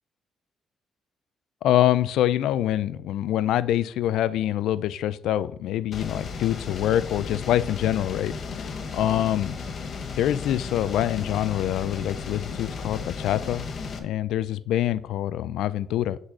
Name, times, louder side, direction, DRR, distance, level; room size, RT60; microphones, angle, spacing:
voice 1, 1.6-9.6 10.2-13.7 14.0-16.2, left 12 dB, 85° left, 0.3 m, -25 dB
sound 1, 5.9-14.0, left 5 dB, 50° left, 1.1 m, -34 dB
8.7 x 4.1 x 4.8 m
cardioid pair, 90°, 0 cm